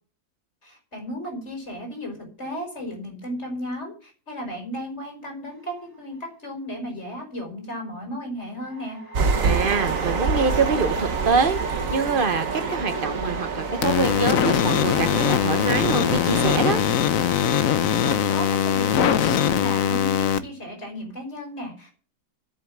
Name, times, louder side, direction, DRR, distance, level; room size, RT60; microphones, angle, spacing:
voice 1, 0.6-9.0 18.0-21.9, equal, 40° left, 2 dB, 5.7 m, -34 dB
sound 1, 5.5-6.2 8.6-19.9, right 3 dB, 15° right, 5.9 m, -38 dB
sound 2, 9.1-16.8, right 4 dB, 55° right, 1.7 m, -27 dB
voice 2, 9.4-16.8, right 5 dB, 35° right, 10 dB, 1.1 m, -25 dB
sound 3, 13.8-20.4, left 9 dB, 60° left, 1.2 m, -21 dB
11.5 x 8.7 x 7.3 m, 0.38 s
omnidirectional pair, 1.7 m